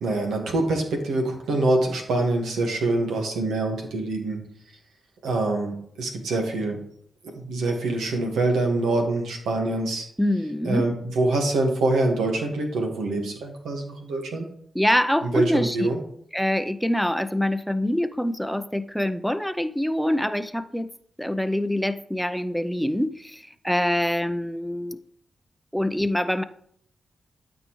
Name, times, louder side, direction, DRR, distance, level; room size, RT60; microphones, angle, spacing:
voice 1, 0.0-4.4 5.2-6.8 7.3-10.0 10.6-14.5 15.2-16.0, right 2 dB, 85° right, 2 dB, 1.6 m, -25 dB
voice 2, 10.2-10.9 14.7-15.9 16.3-20.9 21.2-25.0 25.7-26.4, left 1 dB, ahead, 11 dB, 0.6 m, -25 dB
12.5 x 5.3 x 3.1 m, 0.65 s
supercardioid pair, 45°, 0 cm